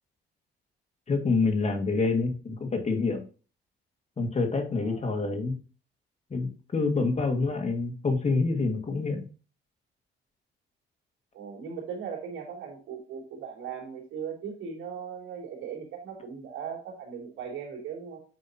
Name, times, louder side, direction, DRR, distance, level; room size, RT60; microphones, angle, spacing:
voice 1, 1.1-3.2 4.2-5.6 6.3-9.3, left 3 dB, 35° left, 4 dB, 1.9 m, -27 dB
voice 2, 11.3-18.2, right 7 dB, 90° right, -1 dB, 3.1 m, -38 dB
8.5 x 5.2 x 2.8 m, 0.36 s
cardioid pair, 90°, 20 cm